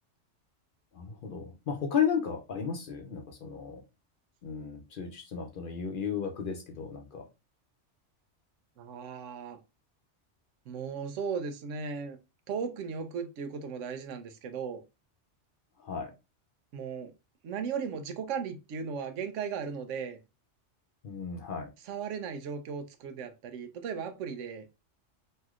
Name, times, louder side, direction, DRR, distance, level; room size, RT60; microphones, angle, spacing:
voice 1, 0.9-3.8 4.4-7.2 15.8-16.1 21.0-21.7, left 7 dB, 55° left, 0.7 m, -34 dB
voice 2, 8.8-9.6 10.7-12.2 12.5-14.8 16.7-17.1 17.4-20.2 21.8-24.7, right 6 dB, 90° right, 0.9 m, -36 dB
3.2 x 2.7 x 2.3 m
omnidirectional pair, 1.2 m